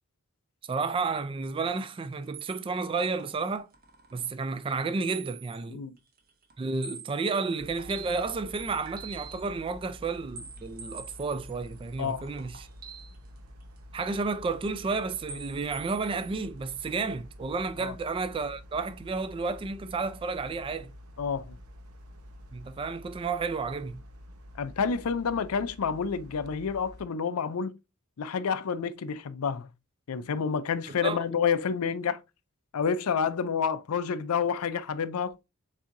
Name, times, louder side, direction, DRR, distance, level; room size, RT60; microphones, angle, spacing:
voice 1, 0.7-3.7 4.1-5.8 6.6-12.7 13.9-20.9 22.5-24.0 30.9-31.2, right 4 dB, 25° right, 0.3 m, -31 dB
sound 1, 2.3-4.3 5.1-5.6 6.0-7.3 7.6-9.5 9.8-13.9 14.3-15.0 15.3-16.3, right 7 dB, 45° right, 0.9 m, -46 dB
sound 2, 7.6-27.1, equal, 85° right, 0.8 m, -48 dB
voice 2, 21.2-21.6 24.6-27.8 28.2-29.7 30.1-32.2 32.7-35.4, left 6 dB, 85° left, 0.5 m, -29 dB
7.1 x 2.8 x 2.5 m
head